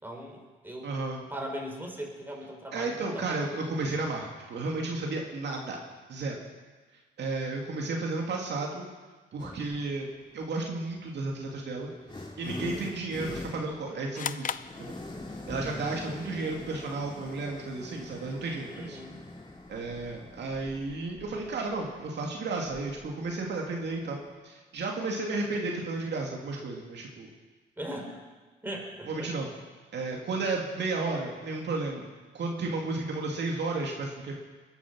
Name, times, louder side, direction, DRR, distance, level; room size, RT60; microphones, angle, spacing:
voice 1, 0.0-0.9 1.3-3.5 12.6-13.0 15.6-16.4 18.7-19.2 27.8-28.2 28.6-29.3, equal, 10° right, 0 dB, 4.3 m, -40 dB
voice 2, 0.8-1.2 2.7-5.8 6.1-6.4 7.2-8.9 9.3-10.1 10.3-11.9 12.4-14.5 14.8-15.0 15.5-19.0 19.7-27.3 29.1-29.5 29.9-32.1 32.3-34.4, right 3 dB, 60° right, 0 dB, 2.5 m, -33 dB
sound 1, 9.4-9.9 10.8-24.3, left 2 dB, 25° left, 2.6 m, -44 dB
sound 2, 14.1-15.6, left 8 dB, 45° left, 0.6 m, -36 dB
21.5 x 10.0 x 6.1 m, 1.3 s
cardioid pair, 90°, 20 cm